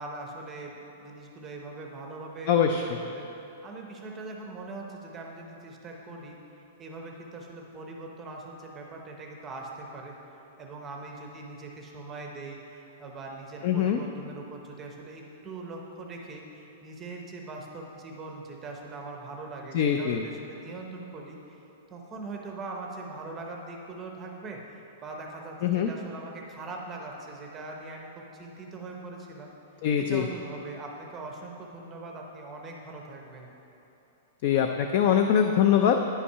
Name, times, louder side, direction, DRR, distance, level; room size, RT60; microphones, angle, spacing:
voice 1, 0.0-3.3 3.6-6.4 6.8-21.6 21.9-29.5 30.0-33.5, right 3 dB, 15° right, 1 dB, 0.6 m, -41 dB
voice 2, 2.5-2.8 13.6-14.0 19.7-20.2 25.6-25.9 29.8-30.2 34.4-36.0, left 8 dB, 35° left, 5 dB, 0.3 m, -23 dB
9.6 x 5.6 x 5.5 m, 3.0 s
supercardioid pair, 175°, 0 cm